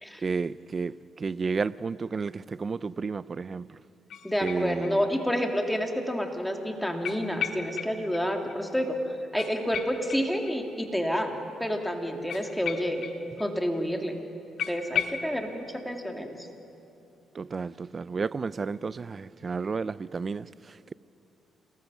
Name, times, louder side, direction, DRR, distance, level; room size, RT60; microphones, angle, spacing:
voice 1, 0.2-3.8 4.4-5.1 17.3-20.9, right 4 dB, 35° right, 0.5 m, -32 dB
sound 1, 4.1-5.2 5.6-5.7 7.0-8.2 8.5-8.6 8.9-9.0 9.4-10.9 12.3-13.5 13.7-13.8 14.1-14.2 14.6-15.3, left 8 dB, 70° left, 1.3 m, -35 dB
voice 2, 4.2-9.0 9.3-13.1 13.4-14.2 14.7-16.5, equal, 5° left, 2.3 m, -29 dB
29.0 x 20.0 x 6.2 m
cardioid pair, 90°, 0 cm